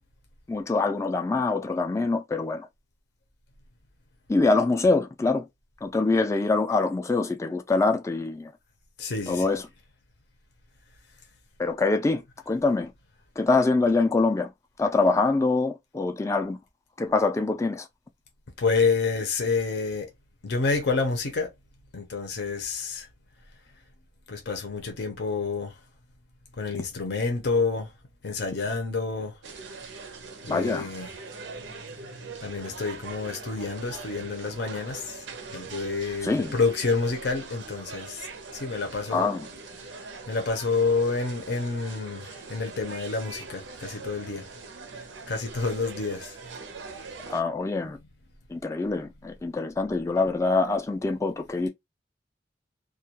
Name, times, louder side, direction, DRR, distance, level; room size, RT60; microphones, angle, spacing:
voice 1, 0.5-2.7 4.3-5.4 5.8-8.5 9.3-9.7 11.6-12.9 13.4-14.5 14.8-16.6 17.0-17.9 30.5-30.9 36.2-36.5 39.1-39.5 47.3-48.0 48.5-51.7, left 3 dB, 15° left, 0.3 m, -24 dB
voice 2, 9.0-9.5 18.6-20.1 20.4-21.5 21.9-23.1 24.3-25.7 26.6-27.9 28.2-29.3 30.4-31.2 32.4-35.2 35.5-38.3 38.5-39.3 40.0-44.5 44.9-46.4, left 4 dB, 65° left, 0.6 m, -28 dB
sound 1, 29.4-47.4, right 4 dB, 85° right, 0.6 m, -42 dB
2.2 x 2.2 x 2.8 m
head